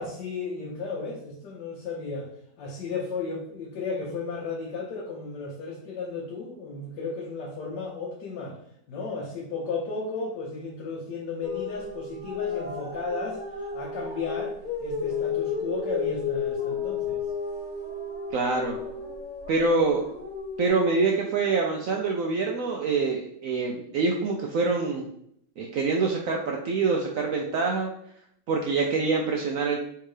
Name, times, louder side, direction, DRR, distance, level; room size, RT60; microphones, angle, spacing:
voice 1, 0.0-2.3 2.6-8.6 8.9-14.6 14.8-17.2, left 4 dB, 75° left, -2 dB, 1.3 m, -34 dB
sound 1, 11.4-20.7, left 5 dB, 30° left, 1.5 m, -32 dB
voice 2, 18.3-18.8 19.5-20.0 20.6-25.1 25.6-27.9 28.5-29.8, right 4 dB, 80° right, 1 dB, 0.7 m, -25 dB
3.5 x 2.8 x 4.7 m, 0.70 s
omnidirectional pair, 1.9 m